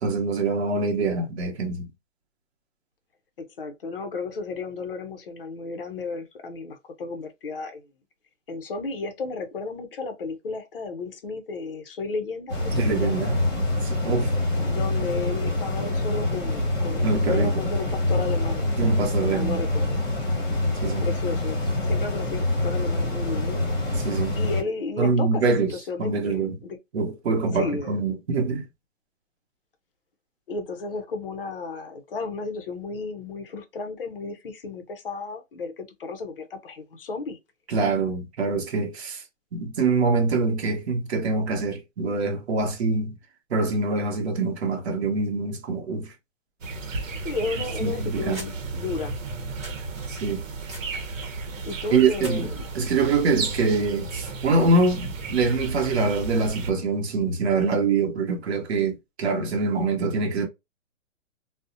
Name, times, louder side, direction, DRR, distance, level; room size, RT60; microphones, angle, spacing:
voice 1, 0.0-1.9 12.8-13.4 13.8-14.4 17.0-17.5 18.8-19.6 20.8-21.1 24.0-24.4 25.0-26.6 26.9-28.7 37.7-39.2 39.5-43.2 43.5-46.1 47.8-48.4 50.1-50.4 51.9-60.5, right 3 dB, 55° right, 0.8 m, -24 dB
voice 2, 3.4-7.8 8.5-13.2 14.6-18.7 19.2-20.0 21.0-23.6 24.4-26.8 27.5-28.0 30.5-37.4 47.2-49.1 51.7-52.6, left 4 dB, 45° left, 0.5 m, -33 dB
sound 1, 12.5-24.6, left 2 dB, 15° left, 0.9 m, -25 dB
sound 2, 46.6-56.7, right 3 dB, 85° right, 0.8 m, -34 dB
sound 3, 47.6-52.6, right 1 dB, 20° right, 0.9 m, -46 dB
2.6 x 2.0 x 2.4 m
hypercardioid pair, 175°, 38 cm